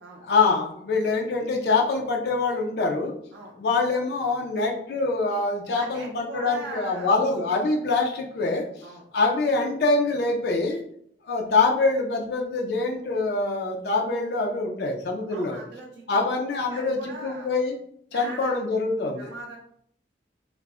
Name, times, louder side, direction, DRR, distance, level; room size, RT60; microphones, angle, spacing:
voice 1, 0.2-3.1 3.6-8.6 9.1-10.8 11.3-15.6 16.1-17.7 18.1-19.3, left 3 dB, 60° left, 0 dB, 0.4 m, -24 dB
voice 2, 5.7-7.3 8.8-9.0 15.3-16.0 16.7-17.5 18.1-18.6 19.2-19.6, right 2 dB, 85° right, -3 dB, 0.4 m, -40 dB
2.3 x 2.0 x 3.5 m, 0.67 s
head